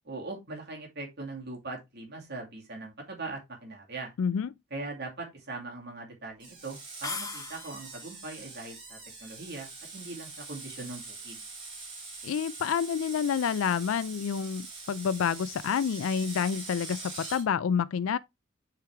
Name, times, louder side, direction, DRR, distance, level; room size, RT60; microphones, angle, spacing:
voice 1, 0.0-4.1 4.7-11.4, right 3 dB, 55° right, 2.4 m, -41 dB
voice 2, 4.2-4.5 12.2-18.2, left 7 dB, 80° left, 0.4 m, -28 dB
Screech, 6.4-17.4, right 3 dB, 25° right, 3.1 m, -44 dB
sound 1, 7.0-8.1, left 4 dB, 15° left, 0.9 m, -38 dB
8.2 x 4.5 x 3.5 m
head